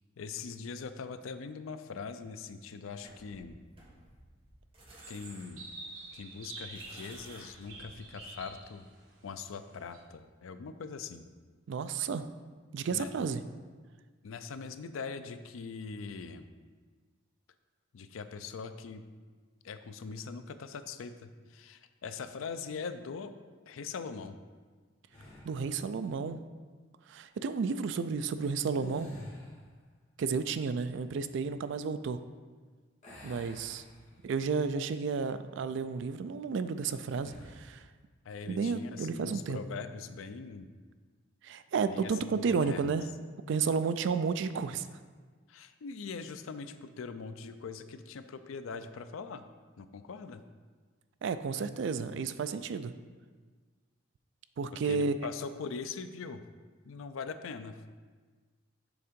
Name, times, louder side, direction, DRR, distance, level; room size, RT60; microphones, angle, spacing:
voice 1, 0.2-3.5 5.1-5.7 6.1-8.9 9.2-11.3 12.9-13.1 14.2-16.5 17.9-19.0 19.6-23.3 23.7-24.4 38.2-40.7 41.9-42.9 45.5-49.5 49.8-50.4 54.8-56.5 56.8-57.8, left 5 dB, 80° left, 10 dB, 0.4 m, -42 dB
sound 1, 3.0-8.7, right 1 dB, 25° right, 1.2 m, -56 dB
sound 2, 5.0-10.0, right 3 dB, 85° right, 1.2 m, -48 dB
voice 2, 11.7-12.3 12.7-13.4 25.4-26.4 27.1-29.1 30.2-32.2 33.2-33.8 34.2-37.8 38.5-39.6 41.4-43.0 43.5-44.9 51.2-52.9 54.6-55.2, right 5 dB, 60° right, 11 dB, 0.3 m, -32 dB
sound 3, 25.1-25.7 28.6-29.7 33.0-34.4 34.9-35.1 37.1-37.6, equal, 35° left, 1.5 m, -47 dB
7.0 x 3.7 x 5.1 m, 1.5 s
head